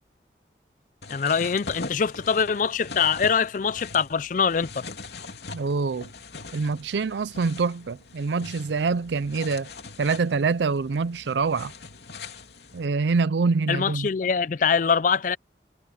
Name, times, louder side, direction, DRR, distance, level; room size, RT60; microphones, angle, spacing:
sound 1, 1.0-12.9, left 3 dB, 70° left, 3.0 m, -42 dB
voice 1, 1.1-4.8 13.7-15.4, left 6 dB, 45° left, 0.4 m, -23 dB
voice 2, 5.5-6.1 6.5-9.7 10.0-11.7 12.7-14.1, right 4 dB, 80° right, 0.5 m, -25 dB
head